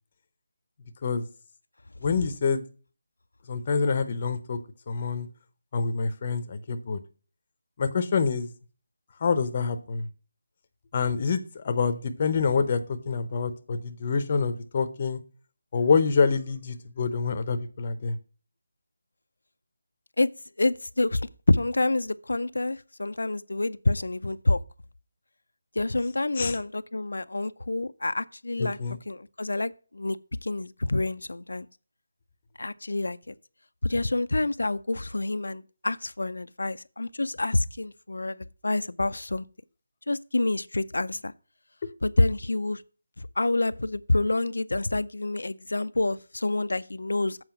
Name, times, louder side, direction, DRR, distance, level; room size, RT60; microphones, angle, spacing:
voice 1, 2.0-2.6 3.5-4.6 4.9-5.3 5.7-7.0 7.8-8.5 9.2-10.1 10.9-12.8 13.1-15.2 15.7-18.2 26.4-26.6 28.6-29.0, left 5 dB, 30° left, 0.7 m, -26 dB
voice 2, 20.6-21.2 21.5-24.6 25.8-28.8 29.1-31.7 32.6-33.3 33.8-39.4 40.1-41.3 42.0-42.8 43.2-47.4, left 2 dB, 85° left, 0.4 m, -27 dB
7.7 x 4.8 x 5.7 m
figure-of-eight pair, 175°, 0 cm